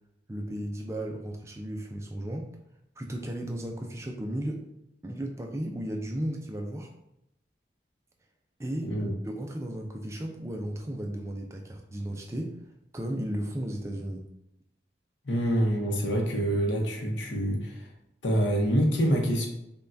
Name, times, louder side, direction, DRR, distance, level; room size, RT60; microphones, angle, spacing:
voice 1, 0.3-2.5 3.0-4.7 5.0-6.9 8.6-8.9 9.2-12.5 12.9-14.3, right 1 dB, 15° right, 2 dB, 0.3 m, -34 dB
voice 2, 8.8-9.1 15.2-17.9 18.2-19.5, equal, 85° left, 1 dB, 0.8 m, -26 dB
5.4 x 2.2 x 2.6 m, 0.83 s
head